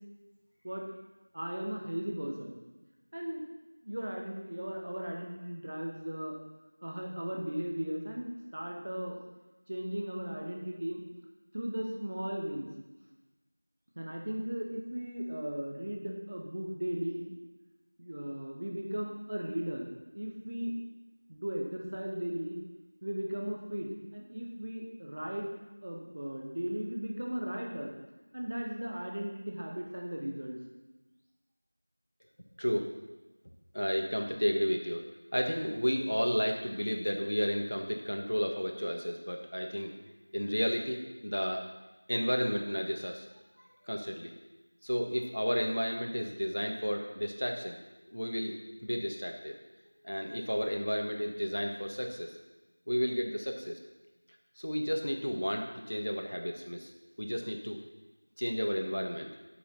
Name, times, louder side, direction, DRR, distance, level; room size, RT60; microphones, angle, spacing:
voice 1, 1.3-2.6 3.1-3.4 3.8-6.4 6.8-9.2 9.7-11.0 11.5-12.7 14.0-17.3 18.0-19.9 20.1-20.7 21.3-22.6 23.0-25.5 25.8-27.9 28.3-30.6, equal, 20° right, 0 dB, 0.8 m, -37 dB
voice 2, 33.7-35.0 35.3-39.9 40.3-41.6 42.1-43.3 43.9-44.3 44.8-47.8 48.1-48.5 48.8-49.5 50.0-52.3 52.9-53.8 54.6-56.9 57.2-57.8 58.4-59.3, equal, 80° left, 3 dB, 1.7 m, -32 dB
8.5 x 6.2 x 5.7 m, 1.1 s
figure-of-eight pair, 180°, 0 cm